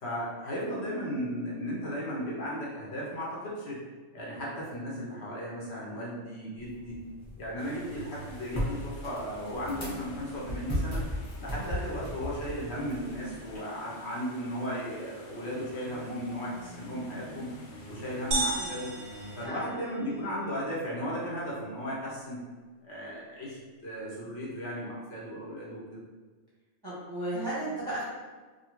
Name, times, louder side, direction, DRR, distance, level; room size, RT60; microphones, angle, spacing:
voice 1, 0.0-3.8 4.1-7.0 7.4-11.0 11.4-17.5 17.9-18.9 19.4-22.4 22.8-26.0, equal, 60° left, -6 dB, 1.0 m, -36 dB
sound 1, 6.6-13.6, equal, 25° left, 1.1 m, -37 dB
sound 2, 7.6-19.5, left 1 dB, 80° left, 0.9 m, -47 dB
sound 3, 18.3-20.3, right 2 dB, 60° right, 0.6 m, -33 dB
voice 2, 26.8-28.0, right 1 dB, 25° right, -9 dB, 0.6 m, -35 dB
2.8 x 2.4 x 2.9 m, 1.4 s
omnidirectional pair, 1.3 m